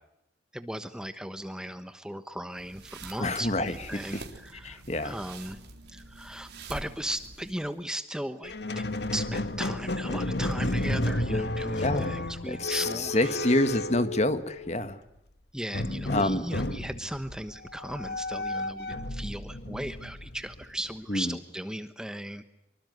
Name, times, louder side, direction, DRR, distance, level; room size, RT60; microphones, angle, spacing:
voice 1, 0.5-5.6 5.9-8.8 9.1-13.3 15.5-22.4, right 1 dB, 5° right, 10 dB, 1.2 m, -37 dB
sound 1, 2.5-7.8, right 3 dB, 65° right, 4.2 m, -46 dB
voice 2, 3.2-4.2 4.6-5.2 11.3-11.5 11.8-12.1 12.4-15.0 16.1-16.5 21.1-21.4, left 1 dB, 35° left, 11 dB, 1.7 m, -27 dB
Squeak, 8.4-14.8 15.7-20.9, left 1 dB, 65° left, 1.7 m, -32 dB
25.5 x 24.0 x 9.4 m, 0.86 s
head